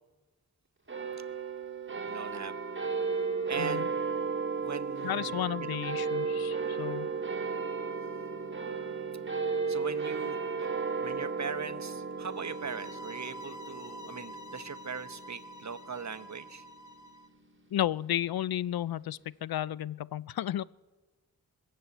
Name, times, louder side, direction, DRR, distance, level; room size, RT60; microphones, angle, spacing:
sound 1, 0.9-17.6, right 5 dB, 30° right, 2.2 m, -35 dB
voice 1, 2.1-2.6 3.5-3.9 4.6-5.8 9.7-10.7 11.0-16.6, right 5 dB, 45° right, 10 dB, 0.9 m, -40 dB
voice 2, 3.6-3.9 5.0-7.1 17.7-20.6, left 12 dB, 70° left, 21 dB, 0.5 m, -33 dB
sound 2, 12.3-17.3, equal, 50° left, 1.0 m, -47 dB
21.5 x 7.6 x 8.2 m, 1.3 s
cardioid pair, 50°, 38 cm